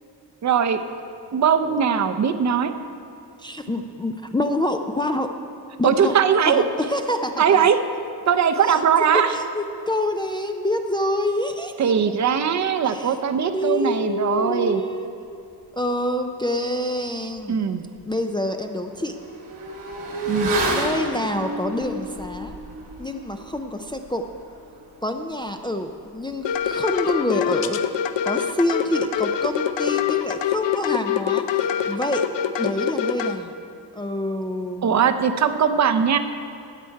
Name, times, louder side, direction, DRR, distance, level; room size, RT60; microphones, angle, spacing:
voice 1, 0.4-0.8 1.3-2.7 5.8-6.6 7.4-7.8 8.3-9.3 11.8-14.8 17.5-17.8 20.3-20.5 34.8-36.2, right 7 dB, 40° right, 9 dB, 0.6 m, -20 dB
voice 2, 1.6-1.9 3.4-5.3 5.8-6.2 6.5-7.6 8.7-8.8 9.1-12.0 12.9-13.1 13.5-15.4 15.7-17.6 18.1-19.2 20.7-22.6 23.0-24.2 25.0-27.8 28.2-32.3 32.6-33.5 34.0-34.9, left 1 dB, 10° left, 5 dB, 0.4 m, -27 dB
Motorcycle / Accelerating revving vroom, 17.4-17.5 17.9-27.9 28.1-28.2, right 1 dB, 85° right, 2.6 m, -32 dB
sound 1, 26.4-33.4, left 9 dB, 80° left, 0.7 m, -24 dB
15.0 x 9.0 x 4.6 m, 2.7 s
wide cardioid pair, 150°, 43 cm